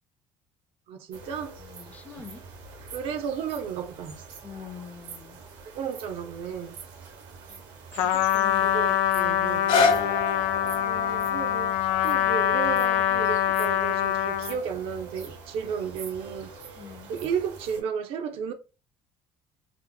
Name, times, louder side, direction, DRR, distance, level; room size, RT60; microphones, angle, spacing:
voice 1, 0.9-1.6 2.9-4.1 5.7-6.8 8.6-9.8 10.5-11.8 12.0-16.5 17.1-18.5, right 7 dB, 65° right, 0.6 m, -33 dB
sound 1, 1.1-17.8, right 5 dB, 85° right, 1.1 m, -45 dB
voice 2, 1.6-2.5 4.4-5.4 7.5-7.6 8.0-8.8 16.8-17.1, left 6 dB, 15° left, 0.4 m, -44 dB
Trumpet, 8.0-14.6, left 11 dB, 80° left, 0.4 m, -24 dB
sound 2, 9.4-15.5 16.2-16.3, left 4 dB, 55° left, 1.0 m, -30 dB
2.9 x 2.0 x 3.8 m
cardioid pair, 140°, 11 cm